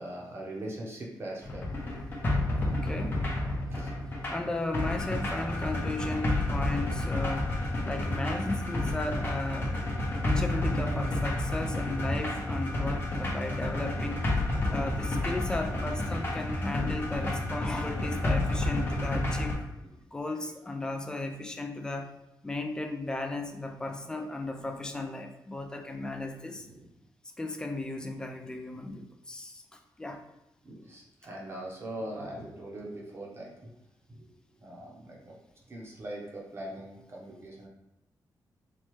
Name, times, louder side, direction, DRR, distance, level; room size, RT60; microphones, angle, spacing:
voice 1, 0.0-1.7 3.7-3.9 26.7-26.9 30.6-33.7 34.1-34.3 34.6-35.4 35.7-37.7, right 1 dB, 35° right, -2 dB, 0.8 m, -41 dB
sound 1, 1.4-19.5, left 1 dB, 30° left, 0.8 m, -30 dB
voice 2, 2.6-3.2 4.3-9.8 10.2-14.3 14.7-19.6 20.1-22.1 22.4-26.7 27.4-30.2, left 2 dB, 10° left, 4 dB, 0.3 m, -35 dB
4.2 x 2.3 x 3.0 m, 0.91 s
wide cardioid pair, 180°, 7 cm